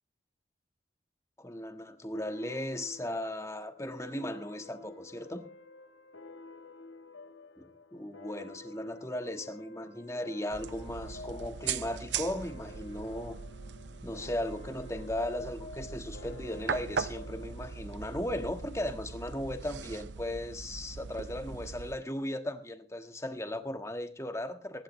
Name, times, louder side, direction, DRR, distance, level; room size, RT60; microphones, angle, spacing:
voice 1, 1.4-5.5 7.6-13.4 14.0-24.8, left 1 dB, 15° left, 8 dB, 1.5 m, -37 dB
sound 1, 2.1-19.2, left 2 dB, 90° left, 1.2 m, -50 dB
sound 2, 10.5-22.0, right 6 dB, 65° right, 0.6 m, -40 dB
23.0 x 11.5 x 3.2 m, 0.37 s
head